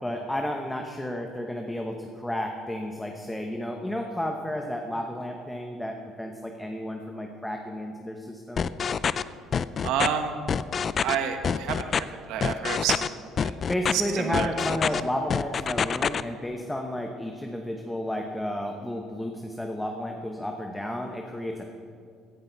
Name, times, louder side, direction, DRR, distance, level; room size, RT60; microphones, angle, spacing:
voice 1, 0.0-8.8 13.7-21.7, left 1 dB, 5° left, 2 dB, 0.8 m, -32 dB
sound 1, 8.6-9.2 9.5-10.1 10.5-11.1 11.4-12.0 12.4-13.1 13.4-13.9 14.3-15.0 15.3-16.2, left 6 dB, 30° left, 0.3 m, -26 dB
voice 2, 9.8-10.3 11.0-13.5 13.9-14.5, right 8 dB, 75° right, 6 dB, 1.3 m, -29 dB
16.5 x 11.0 x 4.6 m, 2.3 s
cardioid pair, 165°, 0 cm